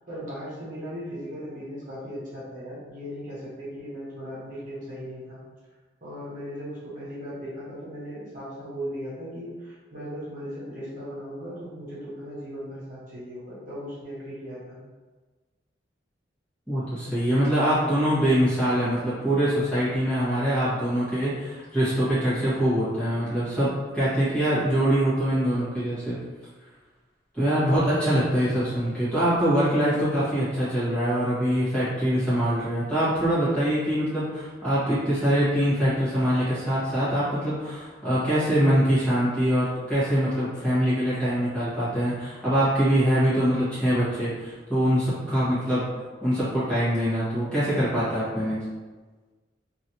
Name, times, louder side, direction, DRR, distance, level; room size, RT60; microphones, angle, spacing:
voice 1, 0.1-5.4 6.0-14.8, equal, 45° right, -9 dB, 1.1 m, -37 dB
voice 2, 16.7-26.2 27.3-45.8 46.2-48.6, equal, 5° left, -12 dB, 1.3 m, -24 dB
3.1 x 2.6 x 2.8 m, 1.3 s
head